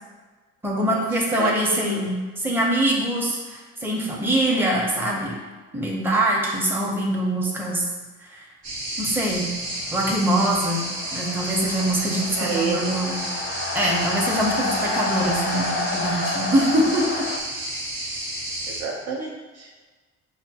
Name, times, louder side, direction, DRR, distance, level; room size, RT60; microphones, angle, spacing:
voice 1, 0.6-5.4 5.7-7.8 8.3-8.4 9.0-9.5 9.9-13.2 13.7-17.3, right 1 dB, 5° right, -3 dB, 0.7 m, -23 dB
voice 2, 1.3-2.0 12.4-12.9 18.7-19.7, right 4 dB, 60° right, -1 dB, 0.7 m, -29 dB
sound 1, 8.6-18.8, right 1 dB, 80° right, 1.0 m, -31 dB
sound 2, 9.7-17.4, left 3 dB, 40° left, 0.5 m, -30 dB
4.9 x 2.1 x 2.8 m, 1.3 s
cardioid pair, 90°, 30 cm